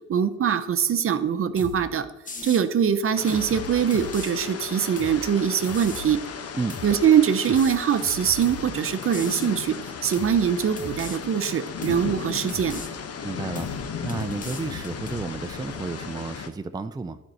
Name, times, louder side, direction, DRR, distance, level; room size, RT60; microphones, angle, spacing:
voice 1, 0.1-2.1 2.4-6.2 6.8-9.8 10.0-12.8, right 8 dB, 45° right, 11 dB, 0.8 m, -23 dB
sound 1, 1.6-1.8 2.3-2.7 3.3-4.3 5.0-5.2 5.6-6.1 6.7-7.0 7.5-8.7 9.1-9.5 10.1-10.4 10.8-11.2 11.8-12.1 12.5-12.9 13.6-13.8 14.1-15.3, left 3 dB, 25° left, 1.3 m, -38 dB
sound 2, 3.1-16.5, left 6 dB, 55° left, 1.1 m, -36 dB
voice 2, 13.2-13.7 14.0-17.2, right 3 dB, 15° right, 8 dB, 0.5 m, -32 dB
11.5 x 5.4 x 7.7 m, 1.0 s
cardioid pair, 90°, 30 cm